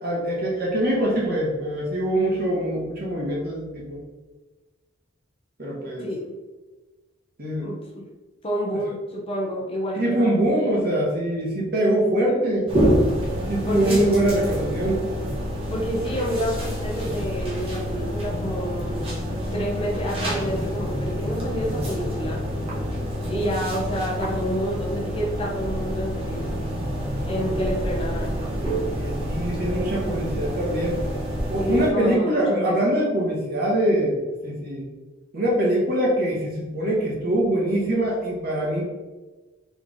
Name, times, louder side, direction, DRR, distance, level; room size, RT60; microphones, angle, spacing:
voice 1, 0.0-4.0 5.6-6.1 7.4-7.7 9.9-12.7 13.5-15.1 28.9-31.0 31.5-34.8 35.3-38.8, right 1 dB, 50° right, -3 dB, 1.3 m, -23 dB
voice 2, 6.0-6.3 7.6-8.0 8.4-10.4 13.7-14.0 15.7-19.0 19.3-22.4 23.3-26.5 27.2-28.4 31.6-32.7, equal, 25° left, -2 dB, 0.8 m, -28 dB
sound 1, 12.7-31.9, equal, 30° right, 1.1 m, -27 dB
4.0 x 3.4 x 3.6 m, 1.2 s
head